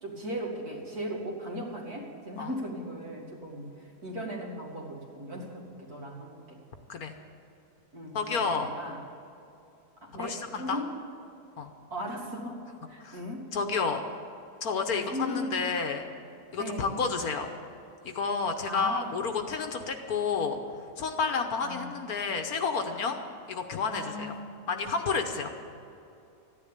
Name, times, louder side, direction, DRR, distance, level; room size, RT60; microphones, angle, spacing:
voice 1, 0.0-3.7 4.0-6.6 7.9-9.0 10.0-10.9 11.9-12.6 12.9-13.5 14.9-15.6 16.5-17.0 18.6-19.2 21.6-21.9 23.9-24.5, equal, 60° right, -1 dB, 2.7 m, -37 dB
voice 2, 8.1-8.7 10.2-10.8 11.6-11.7 13.0-13.2 13.5-14.0 14.6-16.0 16.5-17.5 18.0-20.6 21.0-23.2 23.5-24.3 24.7-25.5, left 5 dB, 60° left, 5 dB, 1.4 m, -30 dB
14.0 x 10.5 x 8.8 m, 2.7 s
omnidirectional pair, 1.9 m